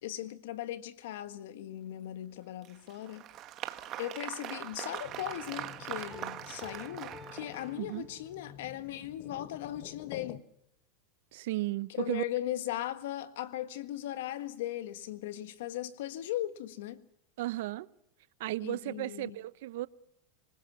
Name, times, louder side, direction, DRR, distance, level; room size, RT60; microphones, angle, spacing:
voice 1, 0.0-3.2 4.0-10.4 11.9-17.0 18.6-19.4, left 13 dB, 75° left, 1.5 m, -38 dB
Applause, 2.6-7.9, right 12 dB, 40° right, 1.6 m, -42 dB
sound 1, 5.0-10.4, left 12 dB, 50° left, 1.2 m, -50 dB
Piano, 6.1-8.7, left 1 dB, 15° left, 3.9 m, -52 dB
voice 2, 11.3-12.2 17.4-17.9 18.4-19.9, right 17 dB, 70° right, 0.8 m, -34 dB
25.5 x 19.5 x 7.4 m
supercardioid pair, 125°, 0 cm